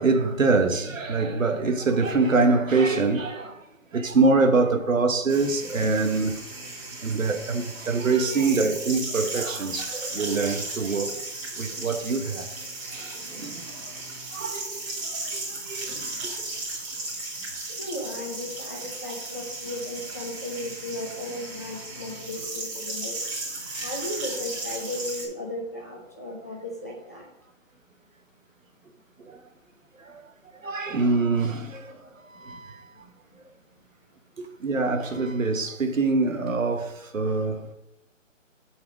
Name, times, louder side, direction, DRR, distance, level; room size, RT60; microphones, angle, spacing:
voice 1, 0.0-3.7 3.9-6.4 7.0-12.5 12.8-13.9 14.3-16.5 23.6-23.9 29.2-29.4 30.0-30.2 30.5-33.1 34.4-37.7, right 3 dB, 80° right, 1.5 m, -25 dB
sound 1, 5.3-25.2, right 2 dB, 30° right, 3.5 m, -35 dB
voice 2, 17.7-23.2 23.7-27.3, left 1 dB, 15° left, 0.7 m, -35 dB
7.0 x 4.8 x 6.3 m
hypercardioid pair, 165°, 39 cm